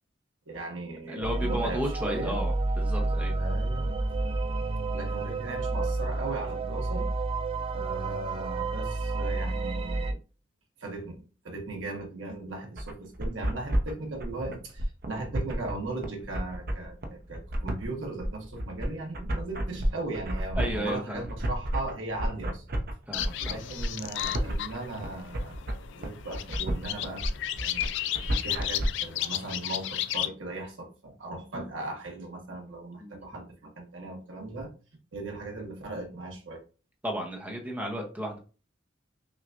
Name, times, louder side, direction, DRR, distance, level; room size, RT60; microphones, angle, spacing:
voice 1, 0.5-2.4 3.3-4.0 4.9-7.1 7.7-10.2 10.8-11.1 11.4-22.6 23.1-25.6 25.9-27.2 27.6-27.9 28.2-34.7 35.1-36.6, right 2 dB, 75° right, 1 dB, 1.1 m, -38 dB
voice 2, 1.1-3.3 20.6-21.3 23.1-23.6 33.0-33.3 37.0-38.4, equal, 10° right, 1 dB, 0.7 m, -33 dB
sound 1, 1.2-10.1, right 2 dB, 30° right, 0.3 m, -30 dB
sound 2, 12.8-28.9, right 1 dB, 55° right, 0.7 m, -32 dB
sound 3, 23.1-30.3, left 12 dB, 65° left, 0.3 m, -34 dB
5.8 x 2.3 x 2.5 m, 0.35 s
head